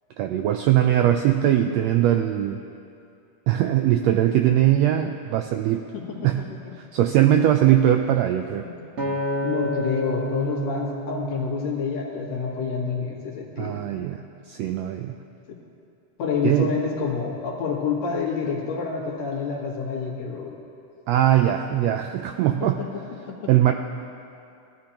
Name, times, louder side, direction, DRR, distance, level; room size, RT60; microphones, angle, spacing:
voice 1, 0.2-2.6 3.5-5.8 6.2-6.4 6.9-8.7 13.6-15.1 16.4-16.7 21.1-22.8 23.5-23.7, right 12 dB, 90° right, 5 dB, 1.5 m, -20 dB
voice 2, 5.9-6.7 8.4-8.8 9.4-13.8 16.2-20.6 22.6-22.9 23.4-23.5, left 5 dB, 65° left, -2 dB, 2.7 m, -28 dB
Acoustic guitar, 9.0-13.3 13.9-14.2, right 1 dB, 65° right, 0.6 m, -31 dB
19.5 x 13.0 x 2.9 m, 2.6 s
omnidirectional pair, 3.5 m